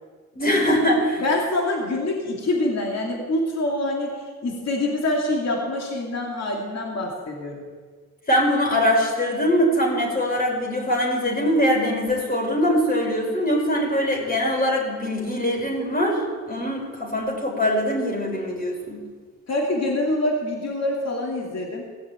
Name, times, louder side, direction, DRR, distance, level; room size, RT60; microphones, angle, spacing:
voice 1, 0.4-1.2 8.3-16.2 16.5-19.0, equal, 25° left, -1 dB, 4.7 m, -22 dB
voice 2, 1.2-7.7 19.5-21.8, left 1 dB, 50° left, -1 dB, 2.8 m, -25 dB
17.0 x 6.5 x 8.7 m, 1.5 s
cardioid pair, 75°, 35 cm